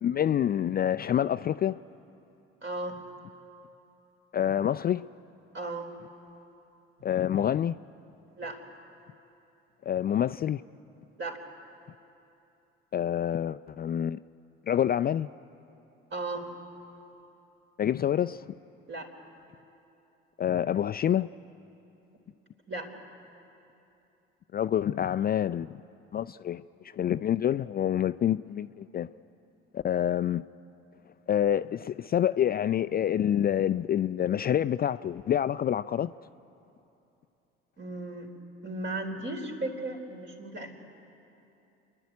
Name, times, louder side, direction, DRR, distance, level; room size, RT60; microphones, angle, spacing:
voice 1, 0.0-1.8 4.3-5.1 7.0-7.8 9.9-10.6 12.9-14.2 14.7-15.3 17.8-18.5 20.4-21.3 24.5-25.8 26.1-29.1 29.7-30.4 31.3-36.1, left 10 dB, 35° left, 0.4 m, -27 dB
voice 2, 2.6-3.0 5.5-5.9 8.4-8.6 11.2-11.4 16.1-16.5 18.9-19.1 22.7-22.9 37.8-38.3 38.6-40.7, right 2 dB, 40° right, 4.1 m, -35 dB
29.0 x 11.0 x 9.5 m
hypercardioid pair, 65°, 29 cm